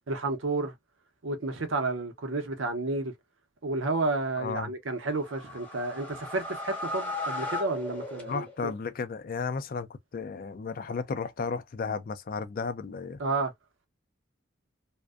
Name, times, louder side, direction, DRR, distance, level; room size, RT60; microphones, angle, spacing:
voice 1, 0.1-0.7 1.2-3.1 3.6-8.7 13.2-13.5, right 2 dB, 70° right, 0.6 m, -31 dB
voice 2, 4.4-4.7 8.3-13.2, left 5 dB, 45° left, 0.3 m, -34 dB
sound 1, 5.0-8.8, left 2 dB, 10° left, 0.6 m, -37 dB
2.5 x 2.1 x 2.3 m
head